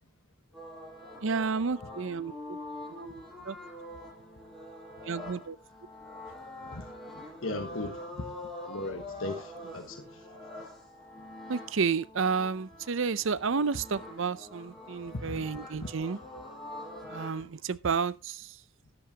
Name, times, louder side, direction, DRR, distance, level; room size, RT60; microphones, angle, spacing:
sound 1, 0.5-17.4, left 1 dB, ahead, 6.5 m, -45 dB
voice 1, 1.2-2.6 2.9-3.6 5.0-5.6 11.5-16.2 17.1-18.5, right 5 dB, 75° right, 0.6 m, -31 dB
voice 2, 7.4-8.4 8.6-10.0 15.3-15.5, left 2 dB, 90° left, 1.3 m, -37 dB
12.5 x 11.0 x 2.9 m
head